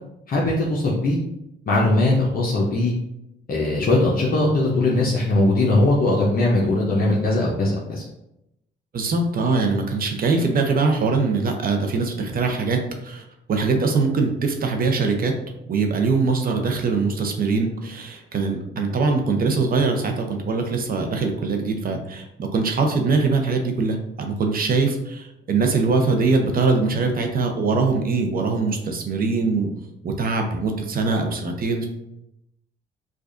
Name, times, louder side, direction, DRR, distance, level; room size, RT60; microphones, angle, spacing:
voice 1, 0.3-1.2 1.7-2.9 3.5-8.0, left 2 dB, 45° left, -4 dB, 0.7 m, -20 dB
voice 2, 8.9-15.3 15.7-29.7 30.0-31.9, right 4 dB, 45° right, 4 dB, 0.7 m, -22 dB
4.8 x 2.4 x 2.5 m, 0.85 s
cardioid pair, 90°, 20 cm